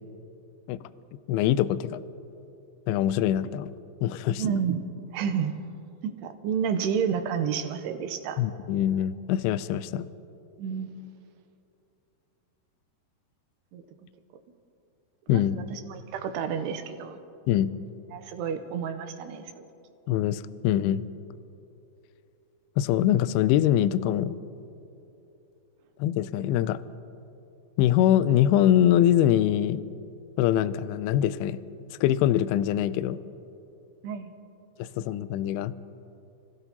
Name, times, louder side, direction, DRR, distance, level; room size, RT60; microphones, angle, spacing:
voice 1, 1.3-2.0 2.9-3.7 4.0-4.4 8.4-10.1 15.3-15.6 17.5-17.7 20.1-21.0 22.8-24.4 26.0-26.8 27.8-29.8 30.4-31.6 32.0-33.2 34.8-35.7, left 11 dB, 85° left, 15 dB, 2.3 m, -23 dB
voice 2, 4.4-4.8 5.1-5.6 6.0-8.4 10.6-10.9 13.7-13.8 15.3-17.2 18.1-19.6 34.0-34.3, right 7 dB, 80° right, 7 dB, 2.8 m, -30 dB
29.5 x 16.5 x 2.9 m, 2.8 s
omnidirectional pair, 4.9 m